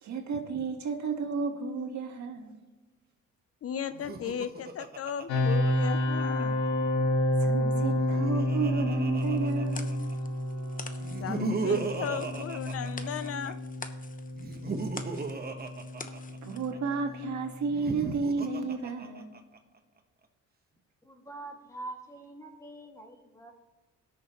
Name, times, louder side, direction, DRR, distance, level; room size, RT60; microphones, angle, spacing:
voice 1, 0.0-2.6 7.4-11.6 14.9-15.1 16.4-19.3, right 4 dB, 70° right, 3 dB, 1.7 m, -33 dB
voice 2, 3.6-6.7 11.2-13.6, left 8 dB, 50° left, 13 dB, 0.6 m, -35 dB
Laughter, 3.9-6.4 7.8-10.1 11.0-13.5 14.4-16.8 17.6-19.6, right 4 dB, 30° right, 1.2 m, -36 dB
sound 1, 5.3-18.1, left 1 dB, 90° left, 1.8 m, -30 dB
sound 2, 9.1-16.7, left 4 dB, 25° left, 1.0 m, -48 dB
voice 3, 21.0-23.5, right 2 dB, 10° left, 2 dB, 2.1 m, -44 dB
19.0 x 6.6 x 3.1 m, 1.2 s
cardioid pair, 90°, 30 cm